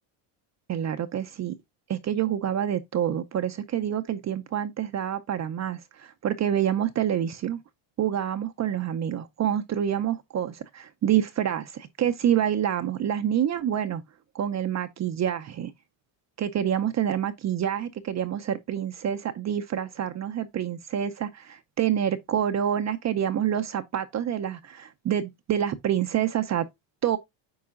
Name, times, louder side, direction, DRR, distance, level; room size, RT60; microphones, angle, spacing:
voice 1, 0.7-1.5 1.9-7.6 8.0-14.0 14.3-15.7 16.4-26.7 27.0-27.2, right 10 dB, 35° right, 0.6 m, -27 dB
8.6 x 4.7 x 2.4 m
cardioid pair, 120°, 48 cm